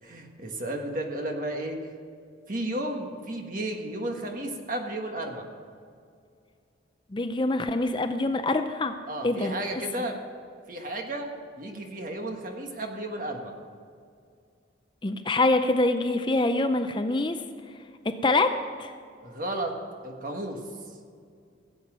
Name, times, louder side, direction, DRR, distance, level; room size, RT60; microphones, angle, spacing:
voice 1, 0.0-1.8 2.5-5.5 9.1-10.2 10.7-13.5 19.2-19.7 20.0-20.6, right 1 dB, 45° right, 3 dB, 1.5 m, -33 dB
voice 2, 7.1-9.0 9.2-10.1 15.0-17.4 18.0-18.9, left 2 dB, 25° left, 8 dB, 0.5 m, -25 dB
16.5 x 8.3 x 6.1 m, 2.3 s
head